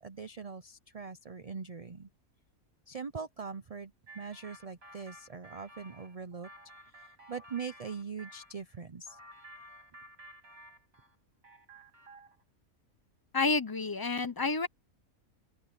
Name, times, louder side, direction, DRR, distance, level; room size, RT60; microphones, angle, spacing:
voice 1, 0.0-2.1 2.9-6.5 6.8-9.2, right 5 dB, 40° right, 0.6 m, -42 dB
sound 1, 4.1-8.5 9.1-11.2 11.4-12.4, right 1 dB, 70° right, 7.0 m, -53 dB
voice 2, 13.3-14.7, left 3 dB, 20° left, 0.7 m, -29 dB
open air
omnidirectional pair, 1.5 m